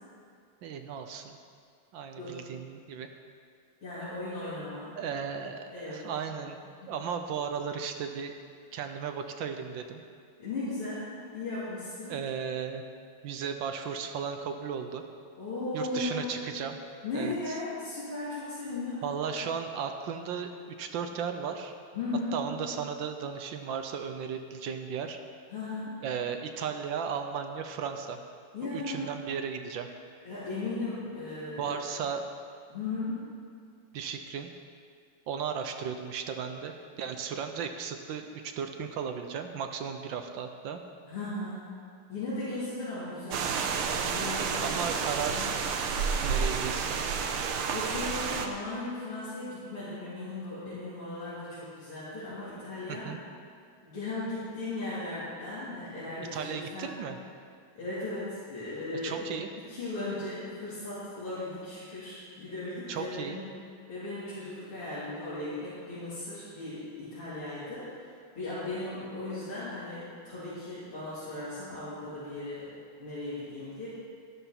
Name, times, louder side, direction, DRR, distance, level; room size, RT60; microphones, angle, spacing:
voice 1, 0.6-1.4 1.9-3.1 5.0-6.6 6.9-8.3 8.7-10.0 12.1-12.8 13.2-15.0 15.7-16.8 17.1-17.3 19.0-21.7 22.3-25.2 26.0-28.2 28.7-29.9 31.6-32.3 33.9-34.5 35.3-40.8 44.6-45.5 46.2-47.0 52.9-53.2 56.2-57.2 59.0-59.5 62.9-63.4, right 7 dB, 70° right, 6 dB, 1.3 m, -35 dB
voice 2, 3.8-5.2 5.7-6.4 6.8-6.9 10.4-12.2 15.4-16.3 17.0-19.0 21.9-22.4 25.5-26.0 28.5-29.1 30.2-31.8 32.7-33.2 41.1-41.7 42.1-43.5 44.0-44.8 45.2-45.5 47.4-53.1 53.8-56.9 57.7-59.2 59.7-63.4 63.9-72.7 73.0-73.9, left 2 dB, 90° left, -13 dB, 4.3 m, -37 dB
sound 1, 43.3-48.5, right 6 dB, 90° right, 1.7 m, -30 dB
12.5 x 12.0 x 4.4 m, 2.2 s
omnidirectional pair, 2.3 m